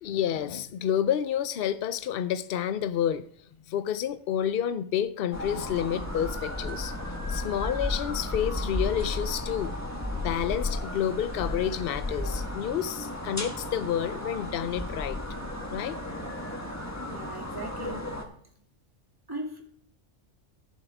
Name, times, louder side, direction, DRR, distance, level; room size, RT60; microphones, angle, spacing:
voice 1, 0.0-3.2 3.7-7.0 7.3-9.7 10.1-15.2 15.7-16.0, left 10 dB, 55° left, 0.7 m, -29 dB
sound 1, 5.3-18.3, left 1 dB, 15° left, 1.4 m, -34 dB
voice 2, 17.1-18.0 19.3-19.6, right 1 dB, 15° right, 2.3 m, -38 dB
15.0 x 7.2 x 3.5 m
omnidirectional pair, 1.3 m